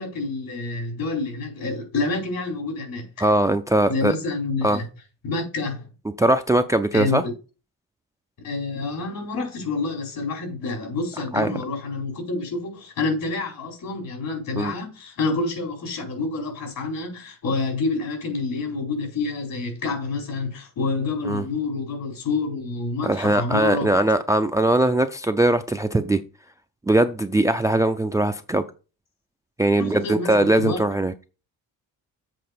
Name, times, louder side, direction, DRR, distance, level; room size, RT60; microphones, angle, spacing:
voice 1, 0.0-3.3 3.9-4.9 5.2-5.9 6.9-7.3 8.4-23.9 29.7-30.8, left 3 dB, 65° left, 4.6 m, -28 dB
voice 2, 3.2-4.1 4.6-4.8 6.2-7.2 11.3-11.6 14.6-14.7 21.2-21.4 23.0-26.2 26.9-28.6 29.6-31.1, right 1 dB, 10° right, 0.4 m, -20 dB
7.8 x 4.4 x 6.7 m
cardioid pair, 145°, 36 cm